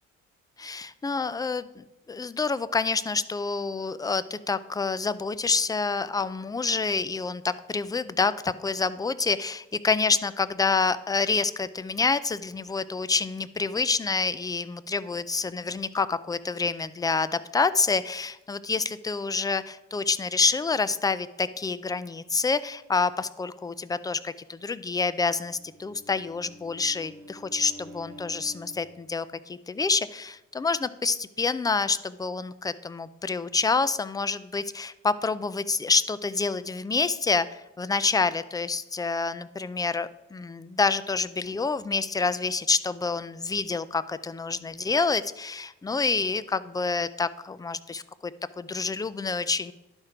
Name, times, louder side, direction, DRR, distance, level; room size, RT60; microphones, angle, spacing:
voice 1, 0.6-49.7, left 4 dB, 15° left, 15 dB, 0.3 m, -27 dB
Bowed string instrument, 25.3-28.9, equal, 80° right, 1.2 m, -48 dB
11.5 x 4.4 x 4.9 m, 0.94 s
cardioid pair, 90°, 30 cm